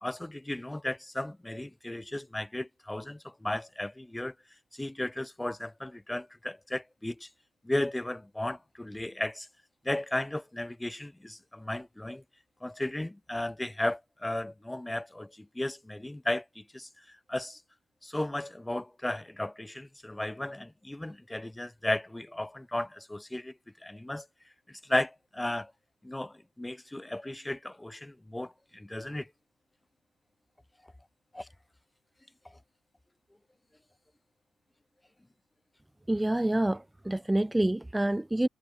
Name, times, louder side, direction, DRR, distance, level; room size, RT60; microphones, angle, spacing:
voice 1, 0.0-4.3 4.7-7.3 7.6-9.5 9.8-12.2 12.6-16.9 17.3-17.6 18.0-23.5 23.8-24.3 24.9-25.7 26.0-29.3 31.3-31.5, left 1 dB, 10° left, 1.1 m, -35 dB
voice 2, 36.1-38.5, right 1 dB, 10° right, 0.5 m, -27 dB
hypercardioid pair, 45°, 0 cm